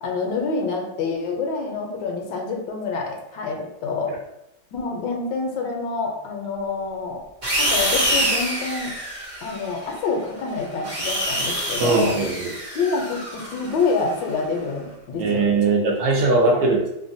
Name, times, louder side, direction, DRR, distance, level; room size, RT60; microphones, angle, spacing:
voice 1, 0.0-4.1 4.7-7.2 7.6-8.9 9.4-12.2 12.7-15.5 16.3-16.6, left 4 dB, 75° left, 1 dB, 1.2 m, -27 dB
sound 1, 7.4-9.9 10.6-14.3, equal, 40° right, 0.5 m, -26 dB
voice 2, 11.8-12.5 15.2-16.9, right 3 dB, 70° right, -1 dB, 0.9 m, -20 dB
3.2 x 2.1 x 2.5 m, 0.85 s
omnidirectional pair, 2.0 m